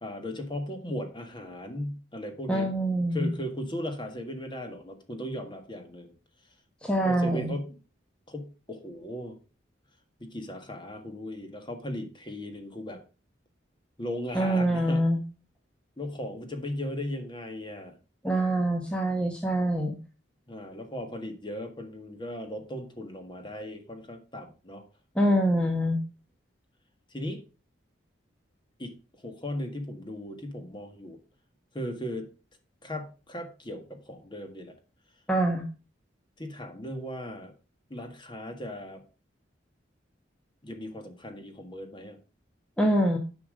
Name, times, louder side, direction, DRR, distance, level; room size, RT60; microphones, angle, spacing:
voice 1, 0.0-2.7 3.1-6.1 7.0-7.8 8.3-9.4 10.2-13.0 14.0-15.1 16.0-18.0 20.5-24.8 27.1-27.4 28.8-28.9 29.2-31.2 31.7-32.3 32.8-34.7 36.4-37.5 37.9-39.0 40.6-42.2, left 1 dB, 25° left, 6 dB, 1.6 m, -37 dB
voice 2, 2.5-3.3 6.8-7.5 14.3-15.2 18.2-19.9 25.1-26.0 35.3-35.6 42.8-43.2, right 1 dB, 5° left, 2 dB, 1.1 m, -25 dB
10.5 x 5.7 x 5.1 m, 0.33 s
head